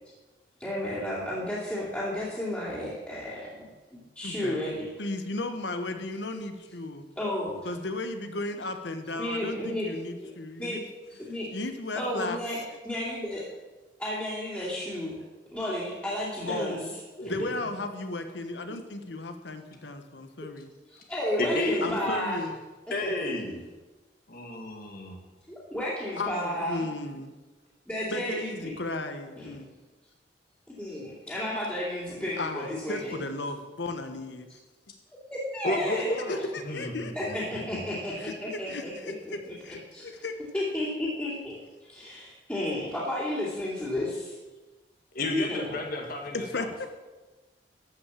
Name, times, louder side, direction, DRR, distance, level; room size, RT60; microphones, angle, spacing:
voice 1, 0.6-4.9 7.2-7.6 9.2-9.9 10.2-10.3 10.6-10.8 11.2-11.5 11.9-12.6 12.8-13.4 14.0-15.2 15.5-16.8 17.2-17.3 20.9-22.4 23.0-23.1 25.5-26.8 27.9-28.7 29.4-29.6 30.8-33.2 35.3-36.1 37.2-39.3 39.7-40.1 40.5-41.6 41.9-44.4 45.5-45.8, left 1 dB, 10° left, -9 dB, 2.8 m, -32 dB
voice 2, 4.2-4.6 5.0-7.1 7.6-10.8 11.3-12.4 16.5-16.9 17.3-20.7 21.8-22.6 26.2-27.3 28.1-29.7 32.4-34.5 36.3-37.3 38.2-40.4 46.3-46.9, left 2 dB, 85° left, 8 dB, 1.2 m, -35 dB
voice 3, 21.4-22.1 22.9-23.6 24.3-25.2 35.6-37.8 45.1-46.7, left 1 dB, 55° left, 2 dB, 1.9 m, -31 dB
13.5 x 5.8 x 7.3 m, 1.2 s
head